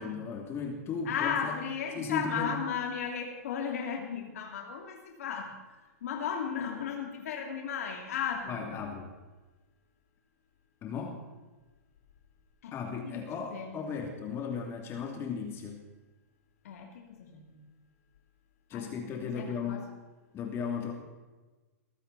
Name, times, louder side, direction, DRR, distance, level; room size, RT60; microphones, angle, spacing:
voice 1, 0.0-1.6 1.9-2.5 8.5-9.1 10.8-11.2 12.7-15.8 18.7-19.9 20.3-20.9, left 5 dB, 30° left, 2 dB, 2.6 m, -36 dB
voice 2, 1.0-5.6 6.0-8.8 12.6-14.0 16.6-17.6 18.7-19.9, left 7 dB, 70° left, 2 dB, 2.8 m, -36 dB
23.0 x 14.5 x 4.1 m, 1.2 s
hypercardioid pair, 120°, 8 cm